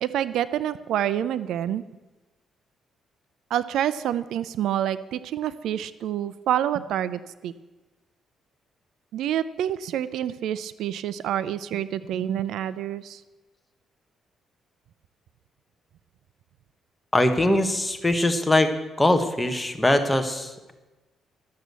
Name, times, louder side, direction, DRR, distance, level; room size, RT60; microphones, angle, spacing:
voice 1, 0.0-1.8 3.5-7.5 9.1-13.2, right 11 dB, 80° right, 15 dB, 0.5 m, -27 dB
voice 2, 17.1-18.7 19.0-20.7, left 1 dB, 10° left, 7 dB, 1.4 m, -22 dB
12.5 x 7.5 x 8.1 m, 1.1 s
cardioid pair, 90°, 0 cm